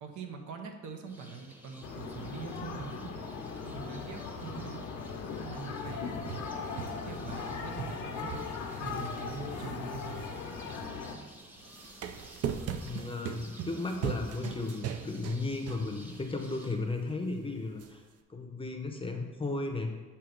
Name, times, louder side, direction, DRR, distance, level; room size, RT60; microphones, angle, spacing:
voice 1, 0.0-3.1 3.6-4.8 5.4-6.5 6.9-8.3 8.8-10.2, right 5 dB, 75° right, 5 dB, 0.8 m, -43 dB
sound 1, 1.1-16.7, equal, 5° right, 0.9 m, -53 dB
sound 2, 1.8-11.2, left 5 dB, 85° left, 0.8 m, -39 dB
sound 3, 5.8-7.5 7.8-10.9 11.6-16.3 16.6-16.7 17.8-17.9, right 8 dB, 55° right, 0.5 m, -40 dB
voice 2, 12.8-18.0 18.3-19.9, left 3 dB, 20° left, 4 dB, 0.6 m, -35 dB
7.4 x 2.8 x 5.0 m, 1.3 s
cardioid pair, 90°, 30 cm